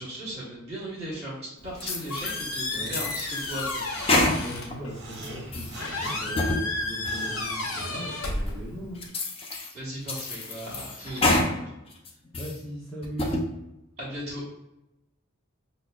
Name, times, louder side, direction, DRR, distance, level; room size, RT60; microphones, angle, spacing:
voice 1, 0.0-1.4 1.6-3.8 9.7-11.6 14.0-14.4, right 1 dB, 30° right, -6 dB, 1.1 m, -37 dB
Squeak, 1.6-9.1, left 2 dB, 75° left, 0.6 m, -33 dB
sound 1, 1.8-2.4 2.9-4.7 5.1-5.8 6.2-6.6 7.0-7.1 7.7-7.8 8.5-8.6 9.0-9.7 10.1-11.5 11.9-12.6 13.0-13.4, left 2 dB, 25° left, 0.4 m, -28 dB
voice 2, 4.4-9.0 12.4-13.4, equal, 5° left, -9 dB, 0.7 m, -39 dB
sound 2, 4.8-8.6, right 2 dB, 50° right, 0.7 m, -43 dB
5.5 x 2.0 x 2.3 m, 0.88 s
head